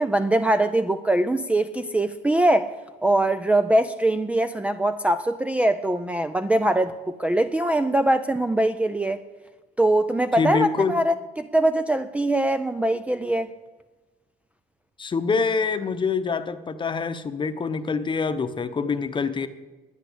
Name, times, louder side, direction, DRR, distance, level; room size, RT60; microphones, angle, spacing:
voice 1, 0.0-2.7 3.0-9.2 9.8-13.5, right 1 dB, 10° right, 0.5 m, -22 dB
voice 2, 10.4-10.9 15.0-19.5, left 5 dB, 30° left, 0.9 m, -25 dB
10.5 x 9.9 x 8.3 m
cardioid pair, 110°, 17 cm